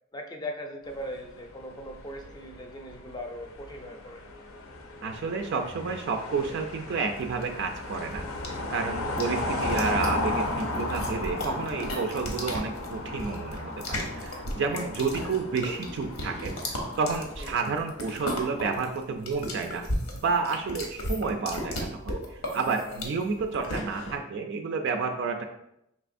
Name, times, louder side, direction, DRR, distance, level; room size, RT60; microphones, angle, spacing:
voice 1, 0.1-4.2 9.0-9.4 14.7-14.9 17.4-17.7 22.9-23.0, equal, 20° left, 3 dB, 0.4 m, -39 dB
sound 1, 0.9-17.3, left 2 dB, 70° left, 0.6 m, -35 dB
voice 2, 5.0-8.2 8.7-19.9 20.1-25.5, right 4 dB, 55° right, 4 dB, 0.3 m, -30 dB
sound 2, 7.1-24.2, left 1 dB, 90° left, 0.9 m, -36 dB
4.9 x 3.3 x 2.5 m, 0.81 s
head